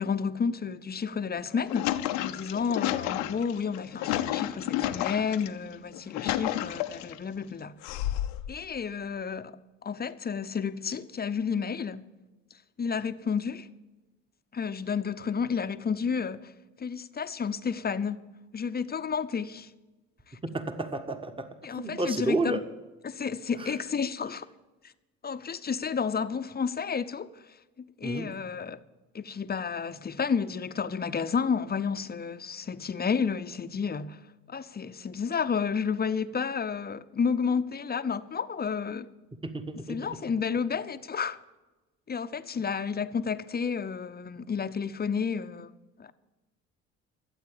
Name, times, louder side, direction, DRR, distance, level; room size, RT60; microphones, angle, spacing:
voice 1, 0.0-1.9 2.2-7.8 8.5-9.6 9.8-12.1 12.8-13.7 14.5-16.5 16.8-18.2 18.5-19.7 20.3-20.4 21.6-22.6 23.0-24.5 25.2-28.8 29.1-34.2 34.5-39.1 39.9-41.4 42.1-45.7 46.0-46.1, left 6 dB, 30° left, 0.8 m, -31 dB
sound 1, 1.4-5.5 5.9-7.2 7.8-8.5, left 13 dB, 80° left, 0.8 m, -31 dB
voice 2, 20.4-22.6 23.6-23.8 28.0-28.3 39.5-40.0, right 2 dB, 15° right, 1.6 m, -31 dB
14.0 x 7.9 x 8.6 m
hypercardioid pair, 60°, 32 cm